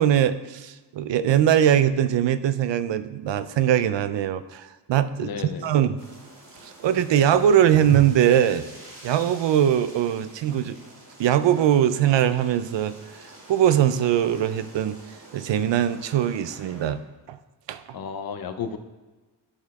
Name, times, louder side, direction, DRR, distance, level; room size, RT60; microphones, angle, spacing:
voice 1, 0.0-6.0 6.6-8.7 9.0-10.8 11.2-15.0 15.3-17.0 17.3-17.4 17.7-17.8, right 10 dB, 85° right, 13 dB, 0.5 m, -21 dB
voice 2, 5.2-5.7 17.9-18.8, left 6 dB, 55° left, 9 dB, 0.6 m, -32 dB
sound 1, 6.0-16.9, right 2 dB, 70° right, 2.3 m, -47 dB
11.0 x 4.2 x 4.1 m, 1.3 s
wide cardioid pair, 155°, 42 cm